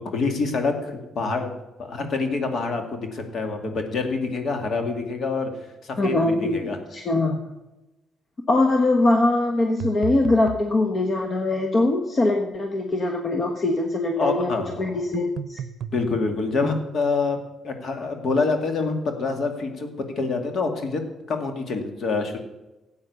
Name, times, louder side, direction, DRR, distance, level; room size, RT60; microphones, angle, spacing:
voice 1, 0.0-1.5 1.8-5.5 5.8-6.8 14.2-15.0 15.9-17.4 17.6-19.9 20.2-21.0 21.3-22.4, left 4 dB, 55° left, 5 dB, 2.2 m, -26 dB
voice 2, 6.0-7.4 8.5-14.5 14.8-15.6, left 2 dB, 40° left, 3 dB, 1.3 m, -22 dB
sound 1, 9.8-10.7 15.1-16.0, right 9 dB, 65° right, 0.6 m, -33 dB
13.5 x 8.5 x 6.9 m, 1.0 s
cardioid pair, 90°, 0 cm